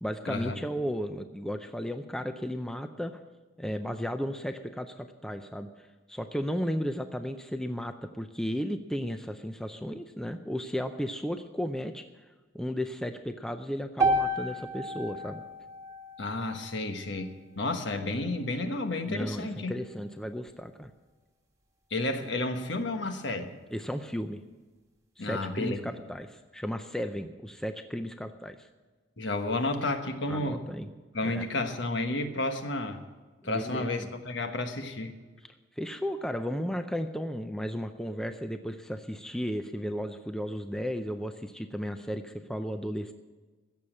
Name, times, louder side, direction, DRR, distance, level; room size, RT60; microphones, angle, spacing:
voice 1, 0.0-3.2 3.6-5.7 6.1-12.1 12.5-15.4 19.1-20.9 23.7-24.4 25.2-28.7 30.3-30.9 31.2-31.4 33.4-34.1 35.4-43.1, equal, 5° left, 8 dB, 0.5 m, -34 dB
sound 1, 14.0-18.2, right 1 dB, 15° right, 1.4 m, -32 dB
voice 2, 16.2-19.7 21.9-23.5 25.2-25.8 29.2-30.6 31.1-33.0 33.4-35.1, left 2 dB, 65° left, 6 dB, 1.3 m, -31 dB
16.5 x 7.1 x 8.8 m, 1.3 s
head